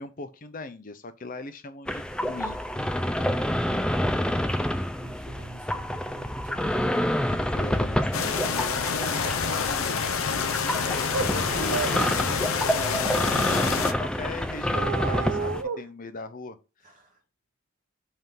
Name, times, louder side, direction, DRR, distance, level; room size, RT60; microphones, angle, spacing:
voice 1, 0.0-2.6 7.3-10.3 10.8-16.6, left 3 dB, 40° left, 0.6 m, -39 dB
sound 1, 1.9-15.6, equal, 5° left, 0.3 m, -28 dB
voice 2, 5.0-6.6 16.8-17.2, right 2 dB, 40° right, 1.5 m, -46 dB
sound 2, 8.1-13.9, left 6 dB, 80° left, 0.6 m, -27 dB
sound 3, 10.8-10.9 11.1-11.3 11.7-12.0 14.7-15.8, right 5 dB, 90° right, 0.7 m, -30 dB
5.6 x 3.7 x 5.8 m
head